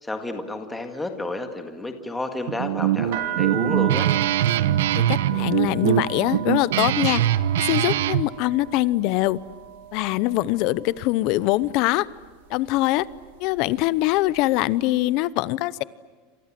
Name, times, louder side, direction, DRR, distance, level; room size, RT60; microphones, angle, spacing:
voice 1, 0.0-4.1, left 2 dB, 5° left, 5 dB, 1.9 m, -31 dB
Guitar, 2.5-8.2, right 12 dB, 90° right, 1.2 m, -22 dB
sound 1, 3.1-11.0 11.3-11.9 12.5-12.8 13.1-14.6, right 11 dB, 65° right, 3.3 m, -36 dB
voice 2, 5.0-7.2 7.6-9.4 9.9-12.1 12.5-13.1 13.4-15.8, left 17 dB, 40° left, 18 dB, 0.8 m, -23 dB
28.5 x 26.5 x 7.7 m, 1.4 s
supercardioid pair, 180°, 0 cm